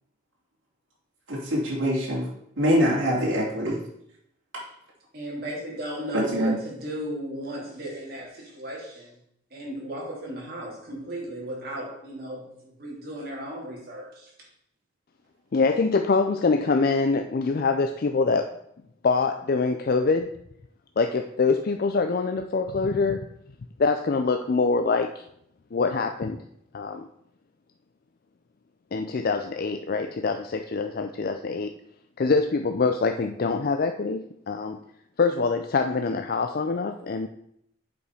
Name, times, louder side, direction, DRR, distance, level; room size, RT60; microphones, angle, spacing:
voice 1, 1.3-2.2 2.6-3.8 6.3-6.5, equal, 65° right, -6 dB, 2.9 m, -24 dB
voice 2, 5.1-9.1 9.5-14.3, right 1 dB, 50° right, -3 dB, 3.1 m, -35 dB
voice 3, 15.5-18.5 19.0-20.3 21.0-23.2 23.8-25.2 25.7-26.4 26.7-27.1 28.9-31.7 32.2-34.8 35.2-37.3, left 4 dB, 50° left, 6 dB, 0.4 m, -24 dB
8.0 x 5.2 x 4.9 m, 0.73 s
head